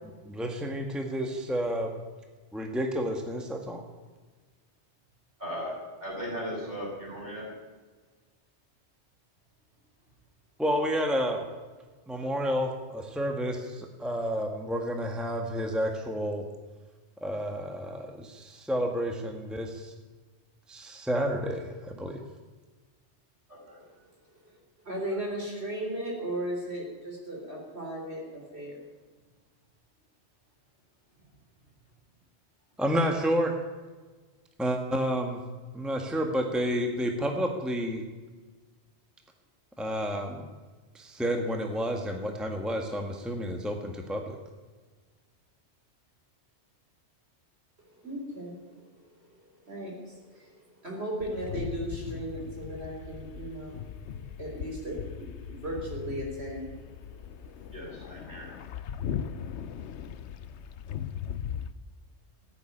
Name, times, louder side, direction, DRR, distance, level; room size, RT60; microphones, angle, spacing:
voice 1, 0.2-2.0 2.5-3.8 10.6-11.4 12.1-16.4 17.2-19.9 20.7-22.2 32.8-33.6 34.6-35.4 35.7-38.0 39.8-40.4 40.9-44.3, equal, ahead, 2 dB, 1.4 m, -30 dB
voice 2, 5.4-7.5 23.5-23.8 57.7-58.5, equal, 40° right, -4 dB, 6.9 m, -37 dB
voice 3, 24.8-28.9 47.9-49.1 49.6-53.8 54.2-57.0 57.4-57.7, right 1 dB, 65° right, -1 dB, 4.1 m, -37 dB
sound 1, 51.2-61.7, left 8 dB, 80° left, 1.0 m, -39 dB
15.5 x 9.3 x 9.9 m, 1.4 s
omnidirectional pair, 1.1 m